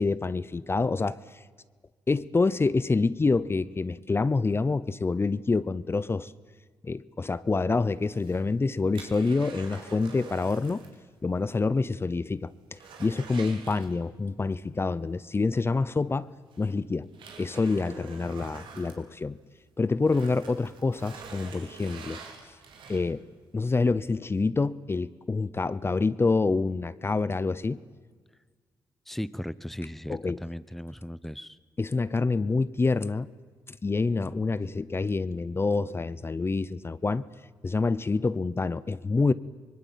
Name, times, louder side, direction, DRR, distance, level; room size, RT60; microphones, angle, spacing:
voice 1, 0.0-1.4 2.1-6.3 6.8-10.8 11.2-16.3 16.6-17.1 17.4-19.4 19.8-22.2 22.9-23.2 23.5-27.8 30.1-30.4 31.8-33.3 33.7-37.2 37.6-39.3, left 3 dB, 30° left, 17 dB, 0.8 m, -27 dB
sound 1, 8.0-11.0 11.3-11.4 11.9-12.0 12.3-14.3 15.8-15.9 16.5-19.6 20.0-23.3 23.8-23.9, right 5 dB, 85° right, 3.8 m, -46 dB
voice 2, 29.1-31.6, equal, 5° left, 17 dB, 0.8 m, -37 dB
24.0 x 20.5 x 9.1 m, 1.5 s
cardioid pair, 70°, 8 cm